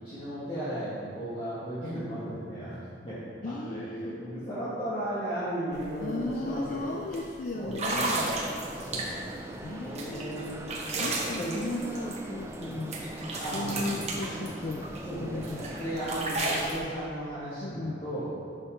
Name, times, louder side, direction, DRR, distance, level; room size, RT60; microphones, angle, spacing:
voice 1, 0.0-2.8 3.0-3.2 3.5-6.9 7.5-8.1 8.7-9.2 9.8-10.6 10.9-11.6 12.7-12.8 13.4-14.1 15.1-15.4 15.7-18.3, equal, 30° left, -12 dB, 1.7 m, -35 dB
voice 2, 3.4-4.1 6.0-8.3 9.6-10.5 11.0-13.0 13.5-14.9 15.1-15.7 17.6-18.0, left 2 dB, 45° left, 1 dB, 0.4 m, -35 dB
sound 1, 5.7-5.9 6.2-6.5 7.1-7.2 7.7-9.4 10.0-12.7 12.9-15.0 15.4-16.8, right 2 dB, 35° right, 1.0 m, -33 dB
sound 2, 8.0-16.7, right 1 dB, 15° right, 0.5 m, -41 dB
6.3 x 5.7 x 5.1 m, 2.3 s
head